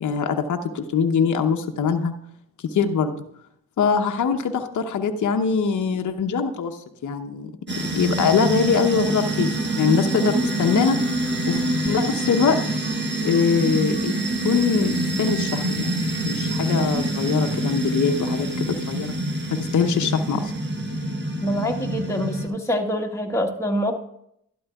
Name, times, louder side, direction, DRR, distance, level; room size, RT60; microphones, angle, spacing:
voice 1, 0.0-2.1 2.6-3.1 3.8-7.5 7.9-12.6 13.2-14.1 14.4-15.9 16.3-19.1 19.5-20.5, left 6 dB, 55° left, 5 dB, 0.9 m, -23 dB
sound 1, 7.7-22.5, right 1 dB, 30° right, 1.6 m, -26 dB
voice 2, 21.4-24.0, equal, 10° left, 1 dB, 1.5 m, -25 dB
12.0 x 11.0 x 2.3 m, 0.74 s
hypercardioid pair, 40°, 35 cm